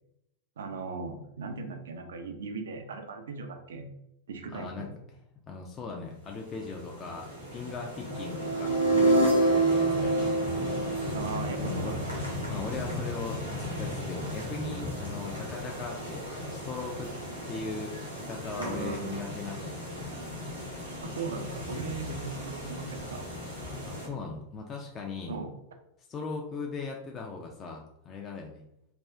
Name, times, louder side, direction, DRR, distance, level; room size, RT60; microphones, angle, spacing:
voice 1, 0.6-3.9 4.3-5.0 11.1-12.1 18.6-19.2 21.0-23.2 25.3-25.5, right 4 dB, 65° right, 5 dB, 0.4 m, -38 dB
voice 2, 4.5-5.2 5.5-10.3 11.6-11.9 12.5-17.1 17.5-19.9 23.9-25.4 26.1-28.6, left 4 dB, 25° left, 0 dB, 0.4 m, -39 dB
sound 1, 6.2-24.1, left 1 dB, 85° right, 0.9 m, -37 dB
sound 2, 8.1-12.1, right 2 dB, 90° left, 0.6 m, -25 dB
3.3 x 2.3 x 2.3 m, 0.80 s
figure-of-eight pair, 90°, 0 cm